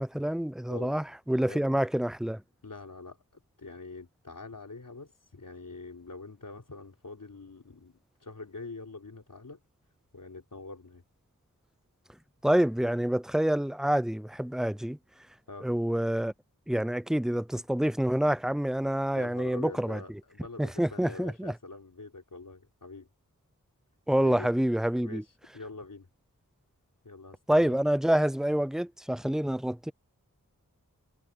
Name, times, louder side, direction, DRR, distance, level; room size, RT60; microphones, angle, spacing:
voice 1, 0.0-2.4 12.4-15.0 15.6-16.3 16.7-20.0 20.6-21.5 24.1-25.2 27.5-29.9, right 1 dB, ahead, 0.6 m, -27 dB
voice 2, 2.6-9.6 10.1-11.0 15.5-15.7 19.1-23.1 24.2-24.5 24.9-26.1 27.0-27.8, left 3 dB, 70° left, 4.1 m, -45 dB
wide cardioid pair, 60°, 33 cm